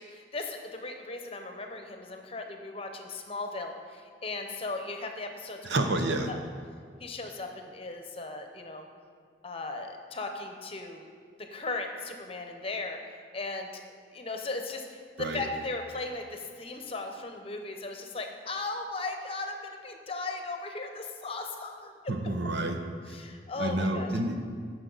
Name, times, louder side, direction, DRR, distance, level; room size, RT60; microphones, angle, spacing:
voice 1, 0.0-5.7 6.3-6.4 7.0-8.9 9.4-11.0 11.4-13.7 14.1-22.1 23.1-24.1, left 3 dB, 30° left, 4 dB, 0.8 m, -37 dB
voice 2, 5.6-6.3 15.2-15.4 22.1-22.8 23.1-23.2 23.6-24.4, right 2 dB, 70° right, 5 dB, 0.8 m, -29 dB
16.0 x 6.2 x 4.0 m, 2.1 s
head